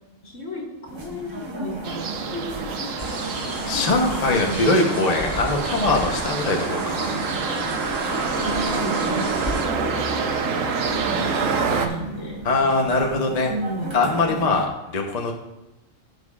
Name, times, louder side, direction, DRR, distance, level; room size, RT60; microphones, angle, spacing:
voice 1, 0.2-5.0 7.5-12.4 13.6-14.0, left 1 dB, 65° left, -2 dB, 2.2 m, -34 dB
sound 1, 0.9-14.7, right 1 dB, 25° right, 0.7 m, -36 dB
sound 2, 1.8-11.9, right 5 dB, 75° right, 1.2 m, -27 dB
sound 3, 3.0-9.7, equal, 15° left, 2.4 m, -34 dB
voice 2, 3.6-7.2 12.4-13.5 13.9-15.3, left 3 dB, 35° left, 1 dB, 0.9 m, -22 dB
15.5 x 6.3 x 2.4 m, 0.96 s
omnidirectional pair, 1.4 m